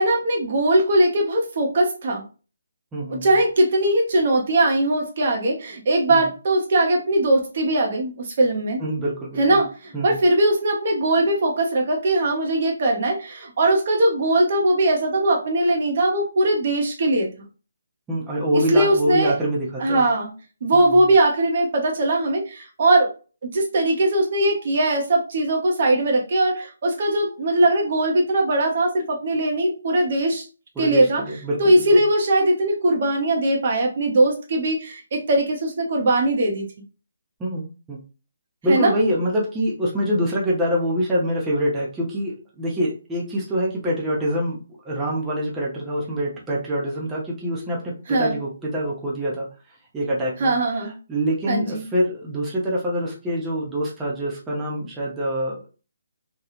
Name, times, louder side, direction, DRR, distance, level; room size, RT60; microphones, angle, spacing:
voice 1, 0.0-2.2 3.1-8.8 9.4-17.3 18.5-19.4 19.8-20.3 20.6-23.1 23.4-30.4 30.8-31.2 31.6-36.7 38.7-38.9 48.1-48.3 50.4-50.9 51.5-51.8, right 1 dB, 50° right, 1 dB, 0.8 m, -20 dB
voice 2, 2.9-3.3 6.1-6.2 8.8-9.6 9.9-10.2 18.1-20.0 20.7-21.1 30.8-31.7 37.4-38.0 38.6-44.6 44.8-49.5 49.9-50.5 50.8-55.7, equal, 10° right, -5 dB, 0.8 m, -25 dB
3.0 x 2.3 x 2.4 m, 0.34 s
figure-of-eight pair, 145°, 0 cm